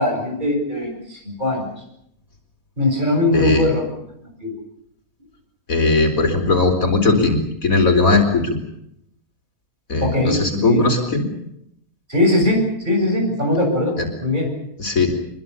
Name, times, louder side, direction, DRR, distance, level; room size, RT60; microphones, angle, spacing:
voice 1, 0.0-1.7 2.8-3.9 4.4-4.5 10.0-10.8 12.1-14.5, left 1 dB, 30° right, 2 dB, 8.4 m, -20 dB
voice 2, 3.3-3.7 5.7-8.6 9.9-11.3 14.0-14.1 14.8-15.1, left 3 dB, 65° left, 5 dB, 4.8 m, -18 dB
25.5 x 23.0 x 7.1 m, 0.75 s
omnidirectional pair, 1.5 m